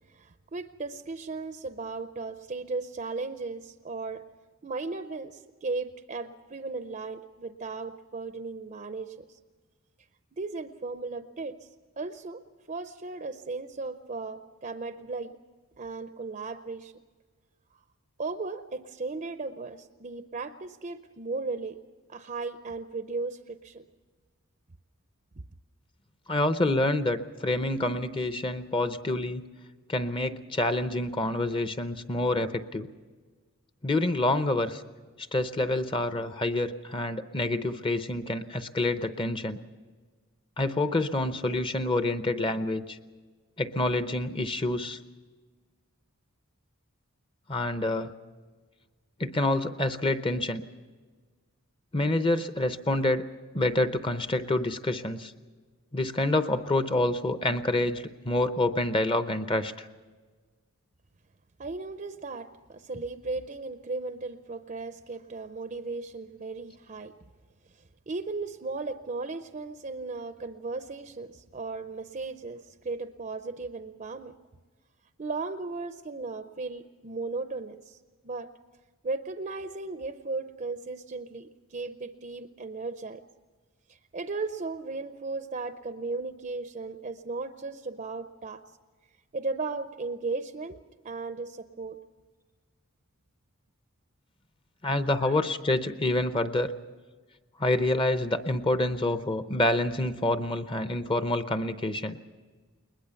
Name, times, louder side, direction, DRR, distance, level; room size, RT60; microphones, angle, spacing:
voice 1, 0.1-4.2 4.6-9.4 10.4-11.7 12.0-12.4 12.7-15.4 15.8-16.9 18.2-21.8 22.1-23.8 61.6-67.1 68.1-74.3 75.2-78.0 78.2-78.5 79.0-83.2 83.9-88.6 89.3-90.8 91.0-92.0 95.2-95.4, right 3 dB, 35° right, 9 dB, 0.6 m, -36 dB
voice 2, 26.3-29.4 29.9-32.9 33.8-34.8 35.3-39.6 40.6-43.0 43.6-45.0 47.5-48.1 49.2-50.6 51.9-53.2 53.5-55.3 55.9-59.9 94.8-96.7 97.6-102.2, left 2 dB, 25° left, 10 dB, 0.7 m, -27 dB
21.0 x 20.5 x 7.0 m, 1.4 s
head